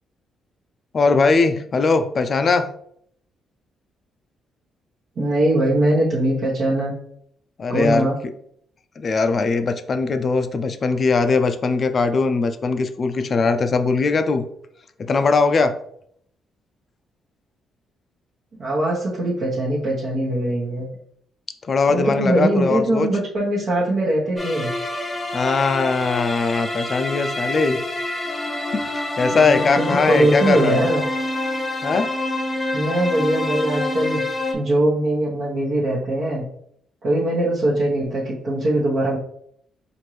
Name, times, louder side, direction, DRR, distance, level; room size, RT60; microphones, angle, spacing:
voice 1, 0.9-2.7 7.6-8.1 9.0-14.4 15.0-15.8 21.7-23.1 25.3-27.8 28.7-30.9 31.8-32.1, left 4 dB, 45° left, 9 dB, 0.4 m, -20 dB
voice 2, 5.2-6.9 7.7-8.2 18.6-20.9 21.9-24.7 29.3-31.0 32.7-34.2 34.5-36.5 37.0-39.2, right 1 dB, 55° right, -7 dB, 1.0 m, -21 dB
sound 1, 24.4-34.5, left 2 dB, 20° left, 0.8 m, -27 dB
4.3 x 2.6 x 3.1 m, 0.67 s
cardioid pair, 90°, 0 cm